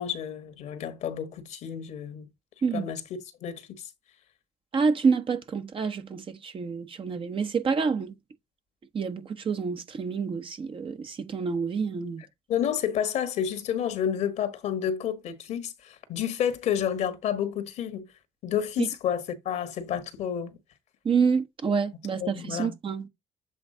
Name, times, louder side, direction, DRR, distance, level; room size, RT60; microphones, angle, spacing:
voice 1, 0.0-2.3 2.7-3.0 3.4-3.9 12.5-18.1 18.4-20.6 22.2-22.7, left 9 dB, 65° left, 1.3 m, -30 dB
voice 2, 4.7-8.2 8.9-12.2 18.8-18.9 21.0-23.1, right 5 dB, 45° right, 1.0 m, -28 dB
7.9 x 3.4 x 3.9 m
hypercardioid pair, 50°, 13 cm